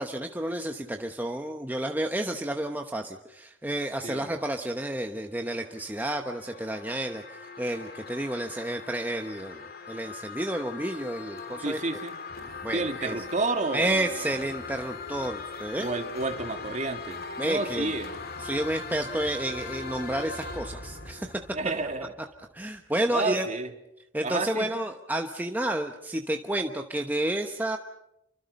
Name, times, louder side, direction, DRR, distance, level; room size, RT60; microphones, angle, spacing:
voice 1, 0.0-11.8 12.6-13.2 13.7-15.9 17.4-17.9 18.4-21.6 22.5-23.5 24.1-27.8, right 1 dB, 10° right, 4 dB, 1.0 m, -31 dB
sound 1, 5.4-22.4, left 4 dB, 50° left, 2.3 m, -40 dB
voice 2, 11.6-12.2 12.7-14.4 15.8-18.1 21.5-22.1 23.1-23.7 24.2-24.7, right 3 dB, 40° right, 6 dB, 2.3 m, -31 dB
28.5 x 25.0 x 5.4 m, 0.83 s
head